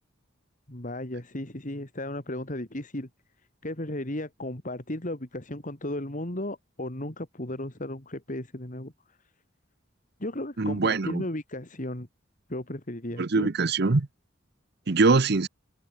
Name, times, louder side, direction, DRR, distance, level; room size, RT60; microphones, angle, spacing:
voice 1, 0.7-3.1 3.6-8.9 10.2-12.1 12.5-13.5, left 1 dB, 40° left, 3.1 m, -35 dB
voice 2, 10.6-11.2 13.2-14.1 14.9-15.5, right 3 dB, 55° right, 0.9 m, -23 dB
head